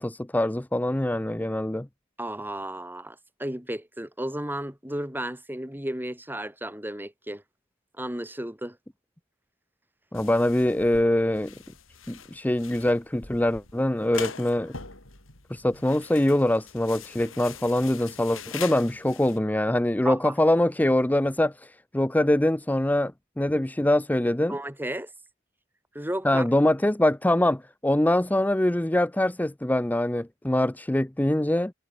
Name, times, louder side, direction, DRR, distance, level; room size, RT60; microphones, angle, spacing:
voice 1, 0.0-1.9 10.1-11.5 12.1-14.8 15.5-24.6 26.2-31.7, left 1 dB, 10° left, 0.6 m, -24 dB
voice 2, 2.2-7.4 8.0-8.8 20.0-20.3 24.5-25.1 25.9-26.4, right 1 dB, 10° right, 4.6 m, -33 dB
sound 1, 10.1-19.4, left 6 dB, 90° left, 7.0 m, -43 dB
head